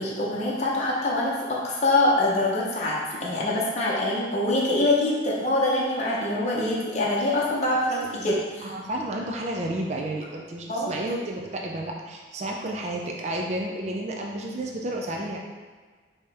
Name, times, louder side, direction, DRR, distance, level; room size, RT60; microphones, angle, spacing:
voice 1, 0.0-8.4 10.7-11.0, left 2 dB, 35° left, -5 dB, 0.7 m, -24 dB
voice 2, 8.1-15.4, right 1 dB, 35° right, -1 dB, 0.4 m, -31 dB
5.3 x 2.9 x 3.4 m, 1.5 s
head